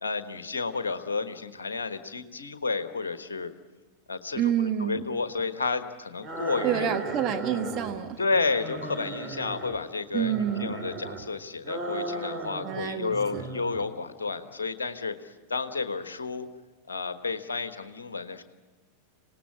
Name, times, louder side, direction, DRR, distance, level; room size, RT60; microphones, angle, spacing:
voice 1, 0.0-3.5 4.1-7.0 8.2-16.5 16.9-18.4, left 4 dB, 70° left, 10 dB, 1.3 m, -31 dB
voice 2, 4.3-5.0 6.6-8.2 10.1-10.8 12.6-13.5, right 9 dB, 35° right, 5 dB, 1.5 m, -28 dB
sound 1, 6.2-8.0 8.3-9.8 10.2-11.2 11.6-12.8 13.1-13.8, right 2 dB, 20° right, 3.0 m, -36 dB
26.0 x 18.0 x 8.5 m, 1.2 s
figure-of-eight pair, 90°, 0 cm